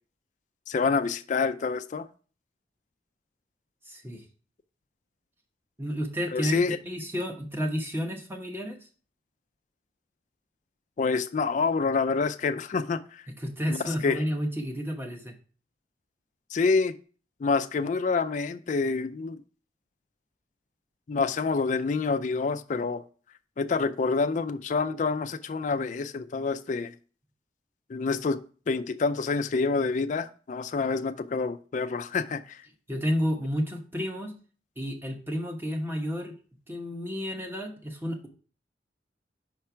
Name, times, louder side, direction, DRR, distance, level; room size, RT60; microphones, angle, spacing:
voice 1, 0.7-2.1 6.3-6.8 11.0-13.0 13.7-13.8 14.0-14.2 16.5-16.9 17.4-19.4 21.1-23.0 23.6-26.9 27.9-28.4 28.7-32.6, left 4 dB, 45° left, 0.4 m, -27 dB
voice 2, 3.8-4.2 5.8-8.8 13.4-15.3 32.9-34.3 34.8-36.3 36.7-38.3, equal, 15° right, 1.0 m, -31 dB
5.9 x 4.4 x 4.5 m
head